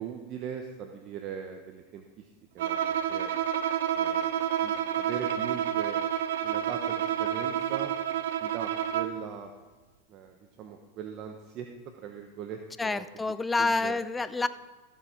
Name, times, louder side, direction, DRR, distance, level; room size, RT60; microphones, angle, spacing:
voice 1, 0.0-2.3 2.5-2.8 3.1-3.3 3.9-6.0 6.4-7.9 8.4-9.5 10.1-11.7 12.0-13.0 13.6-14.0, right 8 dB, 45° right, 4 dB, 0.9 m, -40 dB
Bowed string instrument, 2.6-9.2, right 9 dB, 75° right, 0.7 m, -29 dB
voice 2, 12.8-14.5, left 3 dB, 10° left, 14 dB, 0.5 m, -28 dB
14.0 x 7.1 x 4.5 m, 1.3 s
hypercardioid pair, 110°, 0 cm